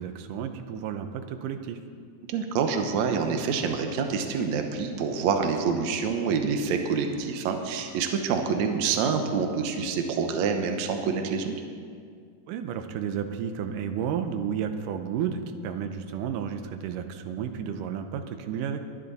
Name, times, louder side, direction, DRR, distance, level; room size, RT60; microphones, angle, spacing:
voice 1, 0.0-1.8 12.5-18.8, right 8 dB, 90° right, 7 dB, 2.4 m, -32 dB
voice 2, 2.3-11.5, right 5 dB, 65° right, 5 dB, 2.2 m, -27 dB
21.5 x 10.5 x 4.1 m, 2.1 s
omnidirectional pair, 3.7 m